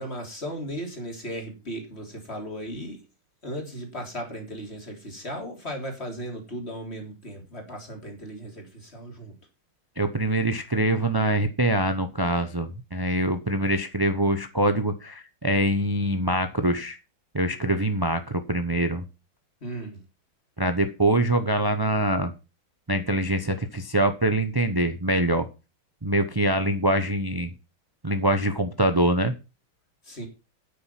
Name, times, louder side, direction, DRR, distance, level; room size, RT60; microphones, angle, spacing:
voice 1, 0.0-3.0 3.4-9.4 19.6-20.0 30.0-30.3, equal, 30° left, 3 dB, 3.8 m, -36 dB
voice 2, 10.0-17.0 17.3-19.0 20.6-22.3 22.9-25.5 26.0-27.5 28.0-29.3, right 1 dB, 30° right, 9 dB, 0.4 m, -24 dB
9.7 x 8.7 x 5.9 m, 0.29 s
omnidirectional pair, 2.3 m